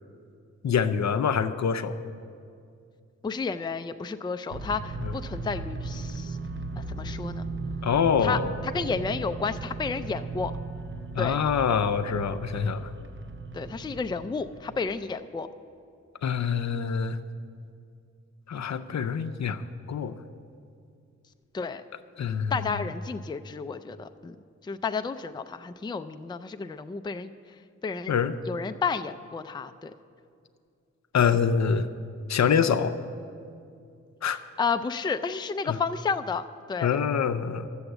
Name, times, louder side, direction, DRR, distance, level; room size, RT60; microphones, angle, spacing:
voice 1, 0.6-2.0 5.0-5.1 7.8-8.6 11.2-12.9 16.2-17.2 18.5-19.6 19.9-20.1 22.2-22.9 28.1-28.3 31.1-31.9 32.3-32.9 34.2-34.4 35.7-35.8 36.8-37.7, left 6 dB, 70° left, 10 dB, 0.6 m, -25 dB
voice 2, 3.2-6.4 6.8-7.4 8.2-8.4 8.7-10.5 11.2-11.4 13.5-15.5 21.5-21.8 22.5-24.4 24.6-27.3 27.8-28.1 28.5-29.9 34.6-37.0, left 5 dB, 15° left, 9 dB, 0.4 m, -31 dB
sound 1, 4.5-14.9, right 3 dB, 40° right, 0.6 m, -37 dB
11.5 x 7.1 x 7.9 m, 2.4 s
wide cardioid pair, 85°, 29 cm